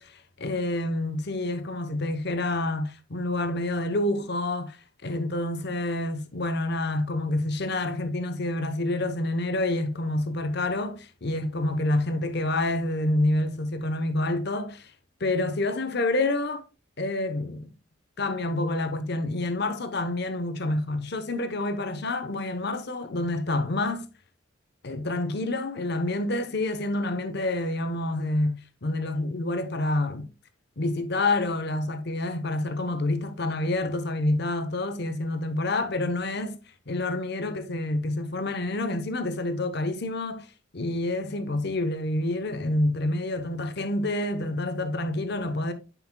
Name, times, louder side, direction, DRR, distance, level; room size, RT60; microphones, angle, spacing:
voice 1, 0.4-4.8 5.0-14.9 15.2-16.6 17.0-17.7 18.2-24.1 24.8-30.3 30.8-36.5 36.9-40.5 40.7-45.7, left 2 dB, 55° left, 0.9 m, -28 dB
9.7 x 5.6 x 2.2 m
head